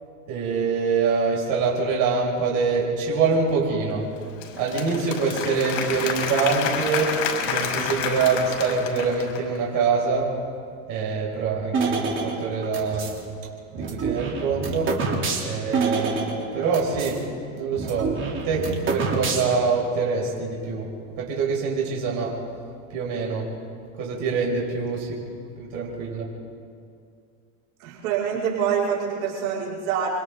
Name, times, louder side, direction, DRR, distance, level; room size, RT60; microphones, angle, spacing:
voice 1, 0.3-4.1 4.6-7.2 7.4-10.3 10.9-13.2 13.7-14.9 15.4-18.1 18.4-20.9 21.2-22.4 22.9-23.5 24.0-25.2 25.6-26.3, right 5 dB, 50° right, -2 dB, 6.3 m, -25 dB
Applause / Crowd, 4.2-9.6, left 7 dB, 70° left, 5.7 m, -29 dB
sound 1, 11.7-13.2 13.8-17.2 17.4-17.5 17.8-19.7, right 4 dB, 30° right, 3.4 m, -27 dB
voice 2, 27.8-30.1, right 7 dB, 80° right, -6 dB, 5.6 m, -25 dB
30.0 x 24.5 x 3.9 m, 2.3 s
supercardioid pair, 140°, 42 cm